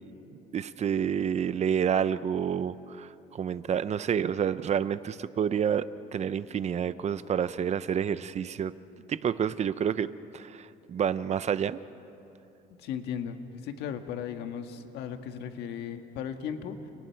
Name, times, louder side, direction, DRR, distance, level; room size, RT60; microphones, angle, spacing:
voice 1, 0.5-8.7 9.1-11.8, right 8 dB, 40° right, 15 dB, 0.7 m, -29 dB
voice 2, 12.8-16.8, left 8 dB, 85° left, 6 dB, 1.6 m, -36 dB
30.0 x 29.5 x 4.6 m, 2.8 s
cardioid pair, 110°, 17 cm